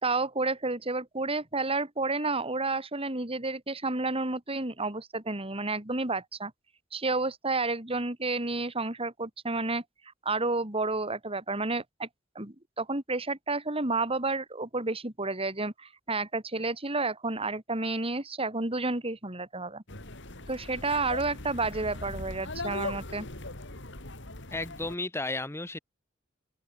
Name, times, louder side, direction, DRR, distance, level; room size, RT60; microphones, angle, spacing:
voice 1, 0.0-6.5 6.9-9.8 10.3-12.1 12.4-19.8 20.5-23.3, right 3 dB, 30° right, 3.6 m, -31 dB
sound 1, 19.9-24.9, left 2 dB, 65° left, 6.7 m, -39 dB
voice 2, 24.5-25.8, left 2 dB, 15° left, 0.9 m, -33 dB
head